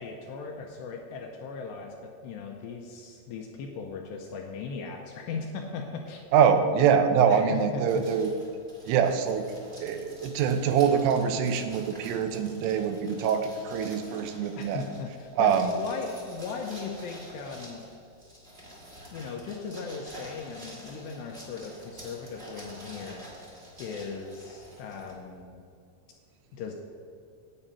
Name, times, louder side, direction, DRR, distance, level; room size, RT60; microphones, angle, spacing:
voice 1, 0.0-6.3 7.3-8.0 14.6-17.8 19.1-23.3 23.8-25.6 26.5-26.7, left 4 dB, 80° left, 1 dB, 2.6 m, -38 dB
voice 2, 6.3-8.3 8.9-9.5 9.8-14.8 15.3-15.7, right 7 dB, 85° right, 7 dB, 3.2 m, -24 dB
sound 1, 7.9-25.4, equal, 40° right, 0.8 m, -48 dB
8.9 x 8.7 x 5.5 m, 2.4 s
omnidirectional pair, 5.6 m